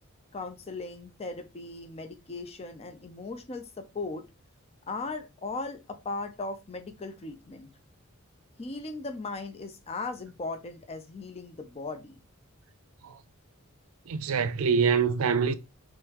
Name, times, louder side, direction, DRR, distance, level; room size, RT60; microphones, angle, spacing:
voice 1, 0.3-4.2 4.9-7.7 8.6-12.1, left 3 dB, 30° left, 0.5 m, -38 dB
voice 2, 14.1-15.5, right 6 dB, 80° right, 0.5 m, -25 dB
3.8 x 3.1 x 2.9 m
head